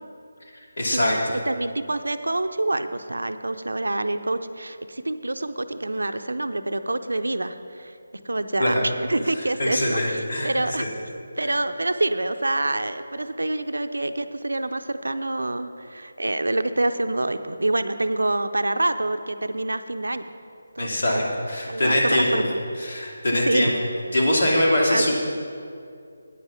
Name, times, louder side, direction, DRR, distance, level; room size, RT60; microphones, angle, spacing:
voice 1, 0.8-1.2 8.6-8.9 9.6-10.5 10.8-10.9 20.8-22.3 22.8-23.7 24.1-25.1, left 1 dB, 60° left, -2 dB, 2.5 m, -22 dB
voice 2, 1.5-8.0 8.2-10.9 11.4-20.2 20.8-21.2 21.7-22.6 23.3-23.7 24.9-25.1, right 2 dB, 85° right, 9 dB, 0.6 m, -26 dB
9.5 x 8.4 x 5.8 m, 2.5 s
figure-of-eight pair, 160°, 0 cm